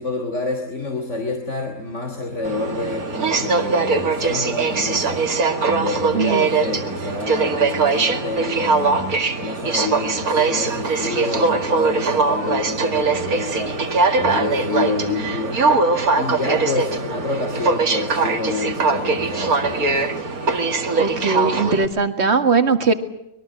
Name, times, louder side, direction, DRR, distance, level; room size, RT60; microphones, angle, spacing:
voice 1, 0.0-5.2 5.7-13.7 14.1-15.6 16.2-20.0, left 3 dB, 55° left, 4 dB, 3.3 m, -28 dB
Aircraft, 2.4-21.9, right 4 dB, 80° right, 2.5 m, -21 dB
voice 2, 6.1-6.5 21.0-22.9, right 4 dB, 45° right, 8 dB, 2.2 m, -19 dB
25.5 x 22.0 x 7.6 m, 0.84 s
omnidirectional pair, 1.5 m